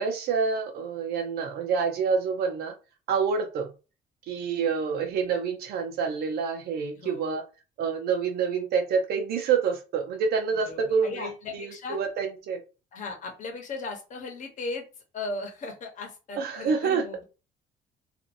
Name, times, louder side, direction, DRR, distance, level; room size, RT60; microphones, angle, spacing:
voice 1, 0.0-2.7 3.1-3.7 4.3-7.4 7.8-12.6 16.4-17.0, right 6 dB, 70° right, 4 dB, 0.8 m, -27 dB
voice 2, 6.9-7.4 10.6-12.0 12.9-14.8 15.1-17.2, left 3 dB, 45° left, 2 dB, 1.0 m, -37 dB
2.7 x 2.5 x 2.6 m, 0.31 s
cardioid pair, 110°, 17 cm